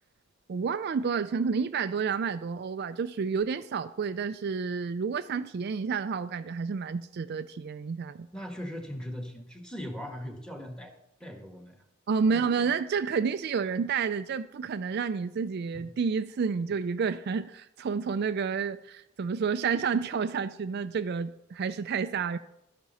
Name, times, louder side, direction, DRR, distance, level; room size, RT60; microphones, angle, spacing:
voice 1, 0.5-8.3 12.1-22.4, right 5 dB, 50° right, 11 dB, 0.3 m, -30 dB
voice 2, 8.3-10.9 11.2-11.8 15.7-15.9, equal, 5° left, 4 dB, 1.4 m, -39 dB
12.0 x 10.5 x 4.1 m, 0.83 s
head